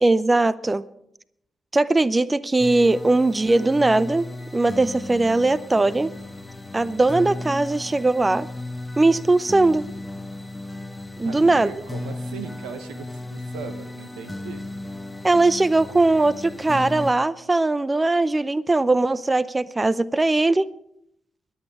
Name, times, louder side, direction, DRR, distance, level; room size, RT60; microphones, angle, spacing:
voice 1, 0.0-0.8 1.7-4.2 4.5-6.1 6.7-8.5 9.0-9.8 11.2-11.7 15.2-20.7, right 2 dB, 25° right, 18 dB, 0.6 m, -20 dB
sound 1, 2.6-17.1, left 2 dB, 15° left, 1.3 m, -35 dB
voice 2, 11.2-14.6, right 6 dB, 85° right, 10 dB, 1.2 m, -38 dB
22.0 x 8.8 x 4.9 m, 0.74 s
hypercardioid pair, 40°, 0 cm